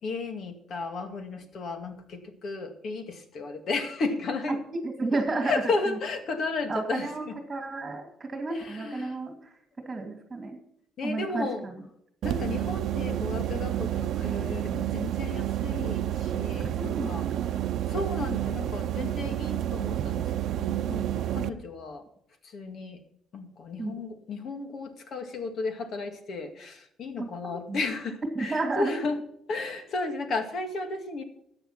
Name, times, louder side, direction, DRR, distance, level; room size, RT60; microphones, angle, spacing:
voice 1, 0.0-4.6 5.4-7.4 8.5-9.2 11.0-11.6 12.2-17.3 17.9-22.0 22.4-23.0 23.3-29.2 29.5-31.2, left 3 dB, 55° left, 6 dB, 2.1 m, -33 dB
voice 2, 4.8-6.0 6.7-9.5 9.8-10.6 11.0-11.8 16.8-17.6 23.8-24.0 27.2-27.3 27.7-27.8 28.3-28.9, right 3 dB, 20° right, 3 dB, 2.7 m, -32 dB
sound 1, 12.2-21.5, right 12 dB, 65° right, 0.8 m, -30 dB
13.5 x 8.9 x 5.9 m, 0.72 s
cardioid pair, 120°, 0 cm